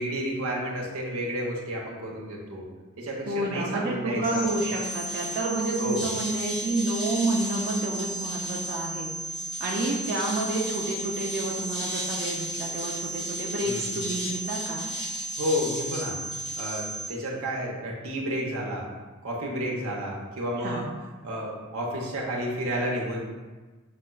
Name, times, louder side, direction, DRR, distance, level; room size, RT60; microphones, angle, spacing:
voice 1, 0.0-2.7 3.0-4.5 5.8-6.1 13.6-13.9 15.4-16.2 16.6-18.9 19.2-20.9 21.2-23.2, equal, 85° right, -2 dB, 0.8 m, -31 dB
voice 2, 3.3-14.9 20.6-20.9, right 2 dB, 45° right, -2 dB, 0.4 m, -29 dB
sound 1, 4.2-17.1, right 1 dB, 30° left, 1.2 m, -33 dB
5.8 x 2.1 x 2.2 m, 1.3 s
head